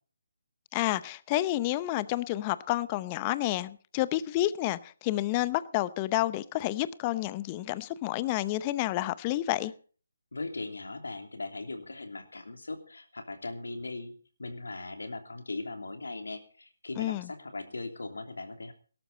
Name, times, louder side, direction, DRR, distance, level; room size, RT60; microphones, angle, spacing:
voice 1, 0.7-9.7 17.0-17.3, left 15 dB, 25° left, 17 dB, 0.7 m, -30 dB
voice 2, 10.3-14.1 14.4-18.7, left 2 dB, 75° left, 6 dB, 3.1 m, -39 dB
18.5 x 12.5 x 4.2 m, 0.41 s
figure-of-eight pair, 150°, 0 cm